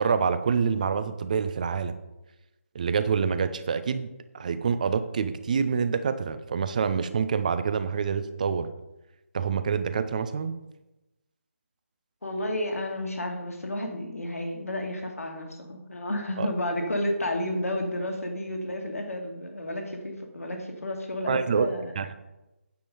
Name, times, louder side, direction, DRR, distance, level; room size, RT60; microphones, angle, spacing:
voice 1, 0.0-1.9 2.7-4.1 4.3-8.7 9.3-10.5 16.4-16.5 21.3-22.1, right 6 dB, 30° right, 12 dB, 0.6 m, -26 dB
voice 2, 12.2-21.9, left 1 dB, 70° left, 3 dB, 2.1 m, -31 dB
9.3 x 7.0 x 5.3 m, 0.99 s
figure-of-eight pair, 155°, 8 cm